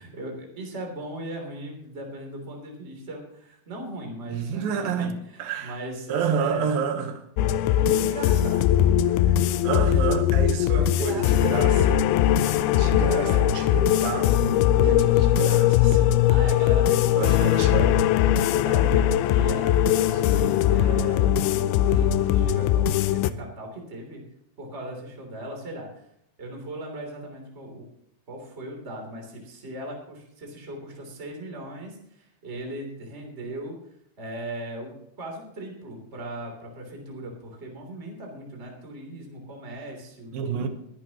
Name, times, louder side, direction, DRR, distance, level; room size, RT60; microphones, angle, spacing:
voice 1, 0.0-6.7 7.8-8.7 9.0-9.4 9.8-10.1 10.6-11.6 12.2-13.5 14.9-15.6 16.3-17.5 18.5-24.2 24.6-26.1 26.4-27.8 28.3-33.8 34.2-40.7, right 1 dB, 20° right, 3.1 m, -38 dB
voice 2, 4.3-5.8 6.1-7.2 9.6-12.1 12.4-16.2 17.1-18.0 40.3-40.7, right 7 dB, 70° right, 2.8 m, -30 dB
sound 1, 7.4-23.3, left 11 dB, 80° left, 2.5 m, -20 dB
22.0 x 11.5 x 3.0 m
omnidirectional pair, 4.5 m